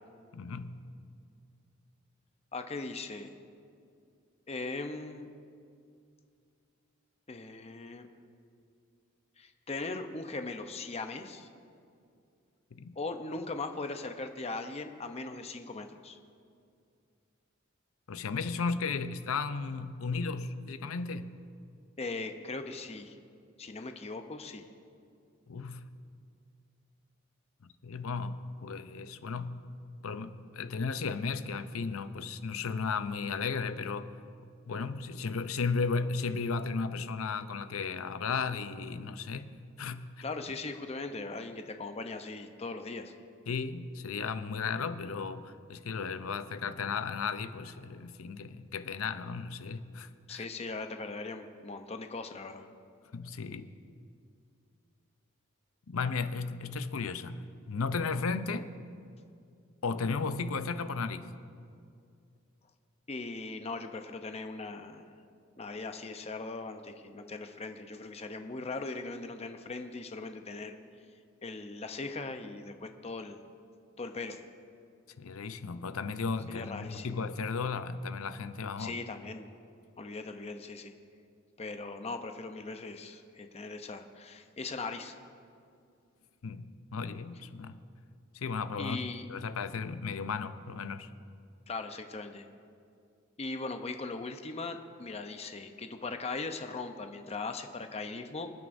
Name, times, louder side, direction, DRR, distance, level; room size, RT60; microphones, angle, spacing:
voice 1, 0.3-0.8 12.7-12.9 18.1-21.3 25.5-25.9 27.6-29.6 30.0-34.1 34.7-40.1 43.5-50.5 53.1-53.7 55.9-57.4 57.7-58.7 59.8-61.3 75.2-79.0 86.4-87.8 88.3-91.1, left 4 dB, 90° left, 11 dB, 0.6 m, -35 dB
voice 2, 2.5-3.3 4.5-5.3 7.3-8.1 9.4-11.5 13.0-16.2 22.0-23.1 23.6-24.6 40.2-43.1 50.3-52.6 63.1-65.0 65.6-70.8 71.4-73.4 74.0-74.4 76.5-77.2 78.8-79.5 80.0-80.9 81.6-85.2 88.8-89.3 91.7-92.4 93.4-98.5, left 3 dB, 30° left, 7 dB, 0.7 m, -39 dB
27.0 x 9.3 x 2.6 m, 2.4 s
head